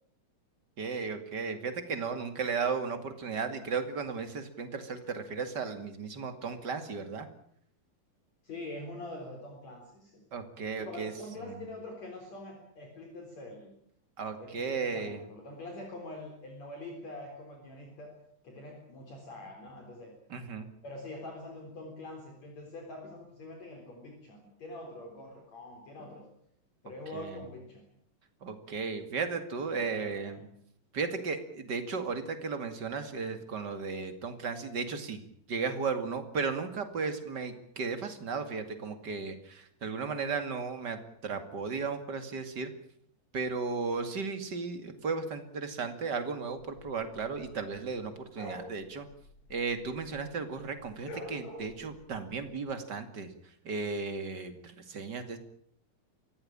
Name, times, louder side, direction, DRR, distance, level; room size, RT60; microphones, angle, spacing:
voice 1, 0.8-7.3 10.3-11.1 11.4-11.6 14.2-15.2 20.3-20.7 27.1-27.4 28.4-30.4 30.9-35.2 35.5-42.7 43.3-49.1 49.5-53.3 53.6-55.4, right 4 dB, 35° right, 8 dB, 2.5 m, -35 dB
voice 2, 8.4-10.2 10.8-13.7 14.4-18.1 18.4-20.1 20.8-26.3 26.8-27.9 29.7-30.5, left 1 dB, 50° left, 2 dB, 5.0 m, -44 dB
sound 1, 46.6-50.3 50.6-52.6, left 1 dB, 75° left, 6.8 m, -47 dB
24.5 x 16.5 x 8.8 m, 0.68 s
omnidirectional pair, 3.9 m